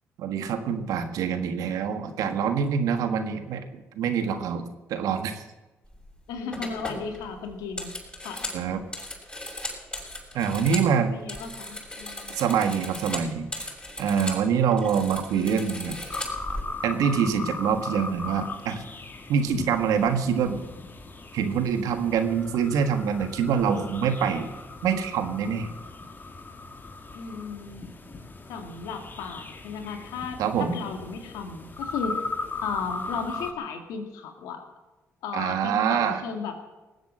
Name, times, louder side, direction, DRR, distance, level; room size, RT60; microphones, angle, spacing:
voice 1, 0.2-5.4 8.5-8.8 10.3-11.1 12.3-13.5 14.0-16.0 16.8-18.8 19.3-20.6 21.3-24.5 24.8-25.7 30.4-30.8 35.3-36.2, right 7 dB, 80° right, 8 dB, 1.6 m, -25 dB
sound 1, 5.9-6.1 6.5-10.9 11.2-14.4 14.7-16.6, left 1 dB, 15° left, 6.8 m, -37 dB
voice 2, 6.3-7.9 8.2-8.5 11.1-12.3 27.1-27.8 28.5-32.2 32.6-34.6 35.2-36.7, left 5 dB, 85° left, 5 dB, 2.1 m, -35 dB
sound 2, 16.1-33.5, left 3 dB, 35° left, 2.0 m, -38 dB
19.0 x 8.2 x 7.6 m, 1.1 s
supercardioid pair, 60°, 6 cm